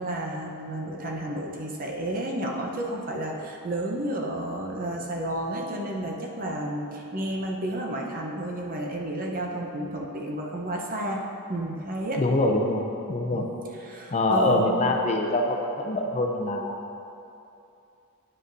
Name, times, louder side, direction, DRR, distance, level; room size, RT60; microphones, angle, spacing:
voice 1, 0.0-11.2 11.5-12.2 13.3-13.4 13.8-14.7, right 1 dB, 40° right, 0 dB, 0.8 m, -31 dB
voice 2, 12.2-13.5 14.1-16.8, left 2 dB, 30° left, 2 dB, 0.5 m, -24 dB
9.6 x 7.7 x 2.6 m, 2.7 s
head